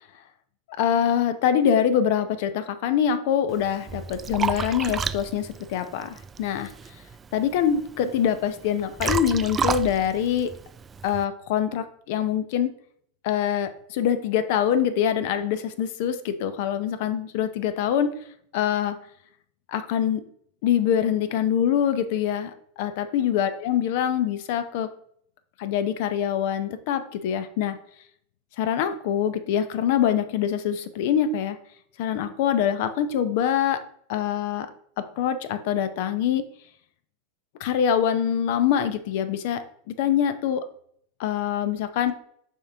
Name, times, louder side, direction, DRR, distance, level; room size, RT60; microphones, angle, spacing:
voice 1, 0.8-6.7 7.3-10.5 11.0-12.7 13.2-18.1 18.5-19.0 19.7-20.2 20.6-22.5 22.8-24.9 25.6-27.8 28.6-31.6 32.0-33.8 34.1-34.7 35.0-36.4 37.6-40.6 41.2-42.1, left 9 dB, 60° left, 11 dB, 0.7 m, -24 dB
Liquid, 3.5-11.2, right 5 dB, 25° right, 0.3 m, -32 dB
6.3 x 4.6 x 3.5 m, 0.64 s
hypercardioid pair, 90°, 0 cm